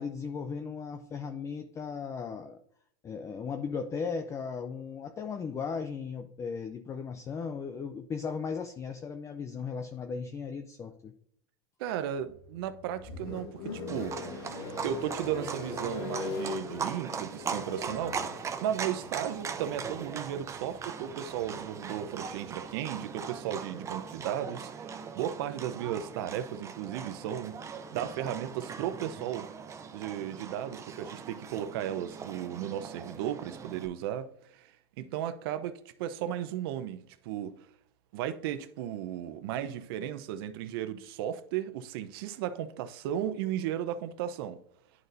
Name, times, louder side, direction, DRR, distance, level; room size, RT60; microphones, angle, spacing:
voice 1, 0.0-2.6 3.0-11.1, left 5 dB, 20° left, 0.5 m, -36 dB
voice 2, 11.8-14.2 14.8-27.6 27.9-29.5 29.9-34.7 35.0-37.6 38.1-44.6, right 10 dB, 65° right, 0.7 m, -35 dB
sound 1, 12.3-22.5, left 4 dB, 65° left, 1.6 m, -42 dB
Livestock farm animals working animals, 13.9-33.9, right 6 dB, 20° right, 0.6 m, -40 dB
11.0 x 4.0 x 2.6 m
hypercardioid pair, 115°, 14 cm